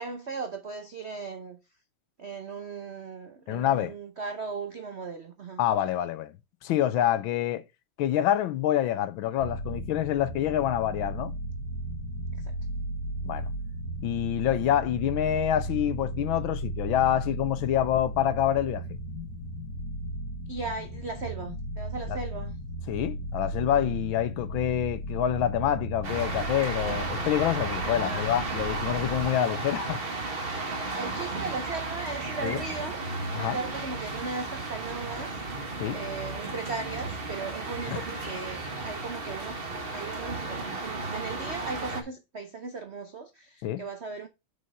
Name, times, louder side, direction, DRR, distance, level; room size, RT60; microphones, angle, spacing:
voice 1, 0.0-1.6 2.2-5.6 12.3-12.5 20.5-22.6 27.8-28.4 30.9-33.0 33.3-39.6 39.9-44.3, right 4 dB, 65° right, 0.6 m, -37 dB
voice 2, 3.5-3.9 5.6-6.3 6.6-7.6 8.0-11.3 13.2-13.5 14.0-18.8 22.1-22.2 22.9-30.0 32.4-32.6 33.3-33.6 35.8-36.0 37.9-38.0 43.6-43.8, left 11 dB, 75° left, 1.4 m, -27 dB
sound 1, 9.4-29.3, right 1 dB, 50° left, 2.4 m, -35 dB
sound 2, 26.0-42.0, right 3 dB, 30° right, 1.6 m, -34 dB
6.4 x 5.6 x 5.3 m
omnidirectional pair, 2.4 m